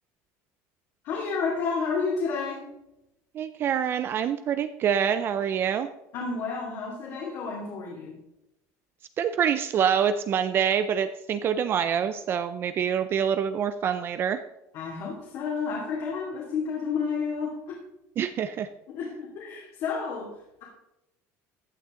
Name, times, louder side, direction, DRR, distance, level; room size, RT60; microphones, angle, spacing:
voice 1, 1.0-2.8 6.1-8.2 14.7-17.8 18.9-20.6, left 5 dB, 55° left, -4 dB, 2.8 m, -31 dB
voice 2, 3.3-5.9 9.2-14.4 18.2-18.7, right 8 dB, 35° right, 11 dB, 0.5 m, -26 dB
15.0 x 9.0 x 3.8 m, 0.88 s
cardioid pair, 155°, 7 cm